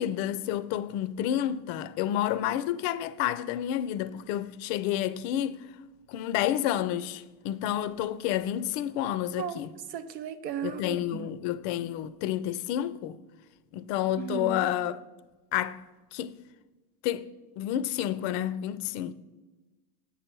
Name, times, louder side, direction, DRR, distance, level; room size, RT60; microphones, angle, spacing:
voice 1, 0.0-5.6 6.1-9.7 10.6-13.2 13.7-15.0 15.5-15.8 16.1-16.4 17.0-17.3 17.6-19.1, left 11 dB, 45° left, 0.5 m, -30 dB
voice 2, 9.9-11.3 14.2-14.7, right 9 dB, 80° right, 0.8 m, -36 dB
8.1 x 5.4 x 4.5 m
hypercardioid pair, 95°, 49 cm